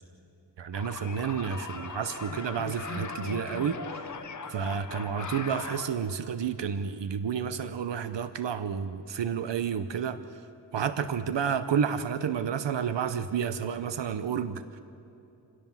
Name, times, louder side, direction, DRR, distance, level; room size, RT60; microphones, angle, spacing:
voice 1, 0.6-3.8 4.5-10.2 10.7-14.8, right 7 dB, 85° right, 11 dB, 0.9 m, -30 dB
sound 1, 0.7-5.9, left 4 dB, 45° left, 1.2 m, -39 dB
27.0 x 16.5 x 7.3 m, 2.9 s
wide cardioid pair, 180°, 42 cm